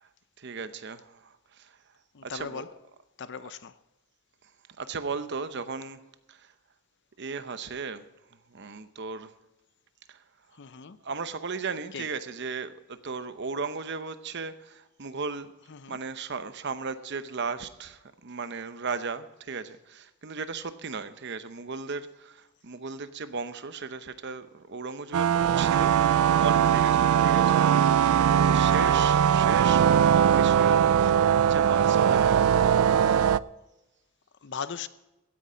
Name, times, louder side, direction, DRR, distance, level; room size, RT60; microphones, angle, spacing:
voice 1, 0.4-1.8 2.2-2.7 3.4-3.5 4.8-6.0 6.3-6.5 7.2-8.0 8.5-9.3 10.1-10.2 11.0-15.5 15.9-25.9 26.2-28.2 28.4-32.6, right 4 dB, 50° right, 0.8 m, -36 dB
voice 2, 2.1-2.7 3.2-3.7 10.6-11.0 11.9-12.1 15.7-16.0 27.9-28.3 28.7-28.9 34.4-34.9, left 6 dB, 55° left, 0.6 m, -38 dB
sound 1, 25.1-33.4, right 8 dB, 75° right, 0.4 m, -21 dB
16.0 x 9.9 x 5.1 m
head